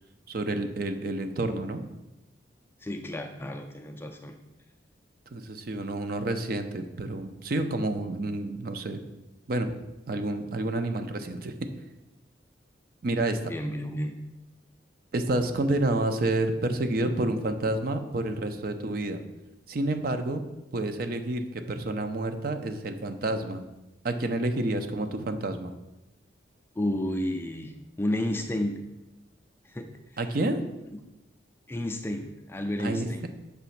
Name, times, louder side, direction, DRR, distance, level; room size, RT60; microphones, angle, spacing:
voice 1, 0.3-1.9 5.3-9.0 9.5-9.7 10.1-11.6 13.0-13.5 15.1-19.2 19.7-20.4 20.7-23.6 24.0-25.7 30.2-30.6 32.8-33.3, right 2 dB, 50° right, 7 dB, 0.5 m, -29 dB
voice 2, 2.8-4.3 13.5-14.1 26.8-27.7 28.0-28.8 29.7-29.9 30.9-31.0 31.7-33.3, left 1 dB, 10° left, 4 dB, 0.3 m, -31 dB
6.7 x 3.0 x 5.7 m, 0.97 s
head